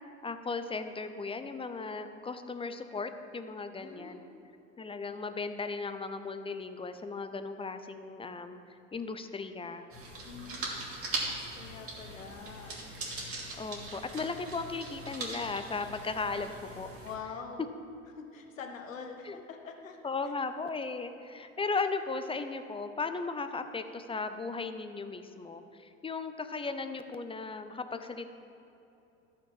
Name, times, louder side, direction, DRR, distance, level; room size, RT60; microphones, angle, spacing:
voice 1, 0.2-4.2 4.8-9.9 13.6-16.9 19.2-19.4 20.0-28.3, left 4 dB, 15° left, 9 dB, 0.7 m, -36 dB
voice 2, 3.8-4.3 10.2-10.6 11.5-12.9 17.0-17.7 18.1-20.0, left 5 dB, 80° left, 4 dB, 1.2 m, -44 dB
sound 1, 9.9-17.1, right 2 dB, 35° right, 2.8 m, -40 dB
14.0 x 6.0 x 5.7 m, 2.8 s
figure-of-eight pair, 65°, 39 cm